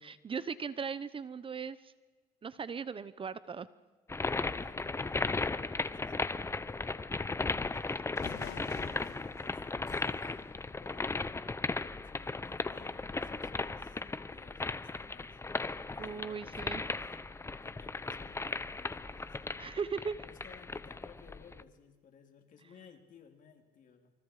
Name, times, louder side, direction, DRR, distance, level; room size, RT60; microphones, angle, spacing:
voice 1, 0.0-1.9 2.4-3.7 16.0-16.9 19.6-20.2, right 6 dB, 30° right, 15 dB, 0.9 m, -38 dB
sound 1, 4.1-21.6, left 3 dB, 15° left, 0.9 m, -36 dB
voice 2, 4.5-7.8 8.2-11.2 12.0-15.4 15.8-19.7 20.2-24.1, left 6 dB, 50° left, 4 dB, 3.9 m, -58 dB
sound 2, 7.7-7.8 8.2-11.6, left 10 dB, 80° left, 2.5 m, -50 dB
28.0 x 26.5 x 5.0 m, 1.3 s
cardioid pair, 110°, 17 cm